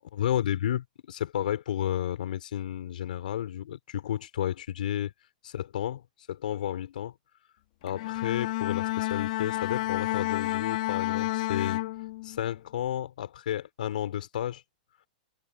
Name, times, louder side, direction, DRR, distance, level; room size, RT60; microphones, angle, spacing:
voice 1, 0.1-5.1 5.4-6.0 6.3-7.1 7.8-11.8 12.2-14.6, left 11 dB, 75° left, 3.5 m, -32 dB
Bowed string instrument, 7.9-12.5, left 18 dB, 55° left, 1.5 m, -30 dB
hypercardioid pair, 130°, 5 cm